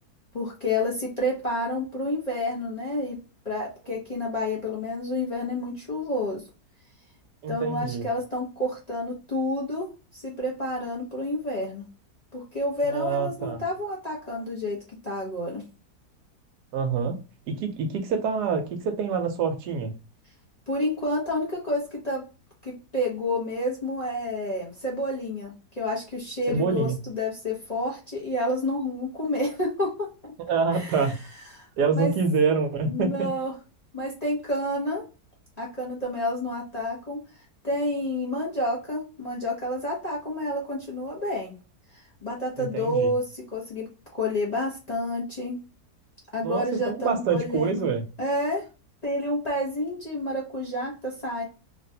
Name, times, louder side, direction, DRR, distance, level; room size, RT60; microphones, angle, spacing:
voice 1, 0.3-3.2 3.4-6.4 7.5-11.8 12.3-14.8 15.0-15.6 20.7-22.2 22.6-30.1 30.7-31.0 31.5-31.7 31.9-32.1 32.8-33.5 33.9-35.0 35.6-37.2 37.6-41.6 42.2-43.9 44.1-45.6 46.3-47.9 48.2-48.6 49.0-51.4, left 1 dB, 30° left, 0.8 m, -29 dB
voice 2, 7.4-8.1 12.8-13.6 16.7-17.2 17.5-19.9 26.5-27.0 30.5-31.2 31.8-33.3 42.6-43.1 46.4-48.0, right 5 dB, 80° right, 1.2 m, -26 dB
3.2 x 2.5 x 2.7 m
omnidirectional pair, 1.8 m